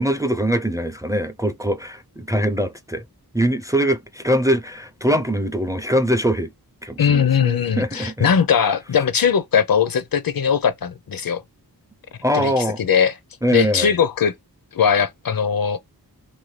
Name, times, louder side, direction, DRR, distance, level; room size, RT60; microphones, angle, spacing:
voice 1, 0.0-3.0 3.3-6.5 6.8-8.3 12.2-12.8 13.4-13.9, equal, 10° right, 0.4 m, -22 dB
voice 2, 7.0-11.4 12.3-13.2 13.5-14.3 14.7-15.8, left 7 dB, 65° left, 0.6 m, -19 dB
2.9 x 2.7 x 3.1 m
wide cardioid pair, 65°, 38 cm